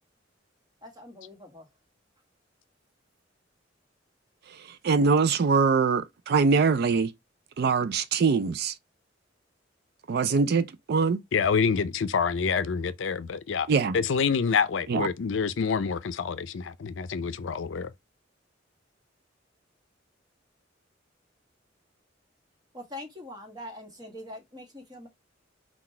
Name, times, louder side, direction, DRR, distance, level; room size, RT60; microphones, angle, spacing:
voice 1, 0.8-1.7 22.7-25.1, left 1 dB, 20° right, 1.3 m, -43 dB
voice 2, 4.5-7.1 7.6-8.7 10.1-11.2 13.7-14.0 14.9-15.1, right 5 dB, 55° right, 0.4 m, -23 dB
voice 3, 11.3-13.7 13.9-17.9, left 6 dB, 75° left, 0.5 m, -27 dB
4.0 x 2.3 x 4.3 m
head